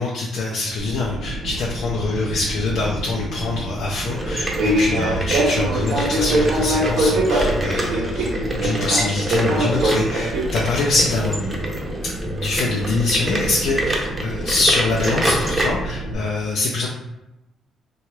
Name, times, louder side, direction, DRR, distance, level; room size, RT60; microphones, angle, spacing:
voice 1, 0.0-11.7 12.3-16.9, left 2 dB, 75° left, -2 dB, 0.4 m, -24 dB
Fixed-wing aircraft airplane, 0.8-16.1, right 1 dB, 85° right, 0.7 m, -25 dB
sound 1, 4.1-15.6, right 1 dB, 20° right, 0.6 m, -28 dB
2.8 x 2.3 x 3.0 m, 0.92 s
cardioid pair, 90°, 0 cm